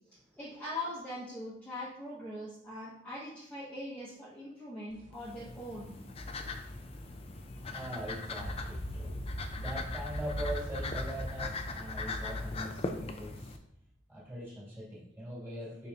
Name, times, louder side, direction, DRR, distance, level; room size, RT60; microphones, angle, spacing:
voice 1, 0.4-5.9, left 1 dB, 10° left, -9 dB, 1.1 m, -41 dB
sound 1, 4.9-11.7, right 2 dB, 80° right, 1.2 m, -54 dB
sound 2, 5.1-13.6, left 3 dB, 30° left, 0.5 m, -40 dB
voice 2, 6.3-13.5 14.1-15.9, right 1 dB, 10° right, -7 dB, 2.5 m, -42 dB
sound 3, 8.4-13.5, equal, 80° left, 1.4 m, -41 dB
6.5 x 5.3 x 2.9 m, 0.76 s
head